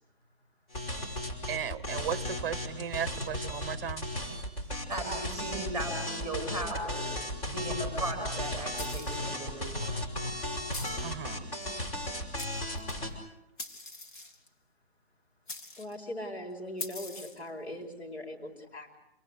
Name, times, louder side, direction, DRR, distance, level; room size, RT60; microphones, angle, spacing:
sound 1, 0.7-13.1, left 1 dB, 35° left, 5.6 m, -35 dB
voice 1, 1.5-4.1 11.0-11.4, right 9 dB, 15° right, 1.1 m, -36 dB
voice 2, 4.9-7.1 7.4-9.7, right 2 dB, 10° left, 7.0 m, -37 dB
sound 2, 8.8-9.3 10.7-11.1 12.0-12.1 12.4-13.0 13.6-14.5 15.5-16.0 16.8-17.5, left 3 dB, 50° left, 2.8 m, -42 dB
voice 3, 15.8-19.0, left 1 dB, 85° left, 4.8 m, -40 dB
27.5 x 21.5 x 8.3 m
hypercardioid pair, 170°, 31 cm